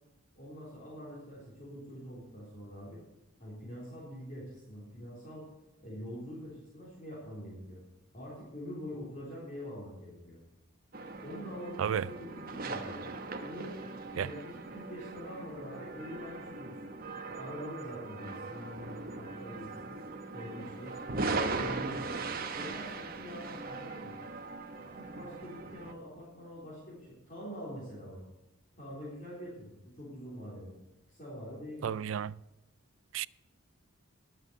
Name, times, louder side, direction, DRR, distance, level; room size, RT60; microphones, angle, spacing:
voice 1, 0.3-3.0 3.4-5.4 5.8-7.8 8.1-10.4 11.2-13.0 13.4-13.8 14.2-16.9 17.3-19.9 20.3-21.0 21.5-22.2 22.6-24.2 24.9-28.2 28.8-30.7 31.1-32.0, equal, 35° left, 3.8 m, -44 dB
sound 1, 10.9-25.9, right 3 dB, 45° right, 1.0 m, -39 dB
voice 2, 31.8-32.3 33.1-33.3, right 8 dB, 70° right, 0.3 m, -32 dB
11.5 x 7.8 x 8.1 m
head